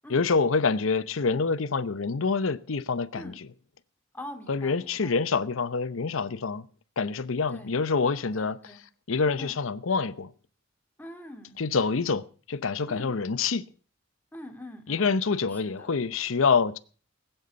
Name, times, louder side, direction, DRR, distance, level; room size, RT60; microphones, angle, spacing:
voice 1, 0.1-3.3 4.5-6.6 7.0-8.6 9.1-10.3 11.6-13.6 14.9-16.8, left 4 dB, 90° left, 0.8 m, -26 dB
voice 2, 4.1-5.2 7.5-7.7 8.3-8.8 9.4-9.6 11.0-11.6 12.9-13.2 14.3-15.2 15.5-16.0, left 1 dB, 10° left, 2.3 m, -44 dB
20.0 x 8.0 x 6.8 m
head